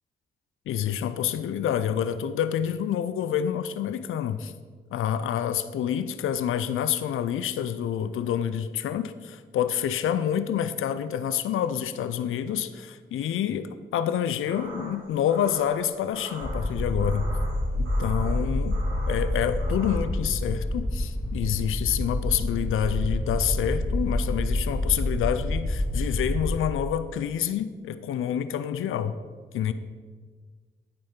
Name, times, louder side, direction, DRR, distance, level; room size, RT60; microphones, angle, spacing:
voice 1, 0.7-4.5 4.9-17.3 17.8-18.8 19.1-29.2 29.5-29.7, left 9 dB, 80° left, 12 dB, 0.4 m, -28 dB
sound 1, 14.5-20.0, right 1 dB, 85° right, 1.3 m, -42 dB
sound 2, 16.4-26.6, left 1 dB, 10° left, 0.6 m, -28 dB
8.6 x 5.3 x 4.3 m, 1.5 s
supercardioid pair, 50°, 21 cm